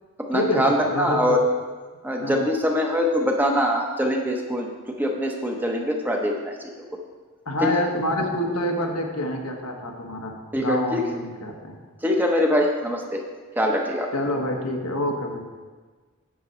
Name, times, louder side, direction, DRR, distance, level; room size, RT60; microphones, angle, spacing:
voice 1, 0.2-1.4 2.0-6.9 7.6-7.7 10.5-11.0 12.0-13.2 13.6-14.1, equal, 10° right, 1 dB, 0.8 m, -23 dB
voice 2, 0.9-1.4 2.2-2.3 7.4-11.8 14.1-15.4, left 1 dB, 85° left, 1 dB, 1.4 m, -27 dB
10.0 x 7.9 x 4.3 m, 1.4 s
head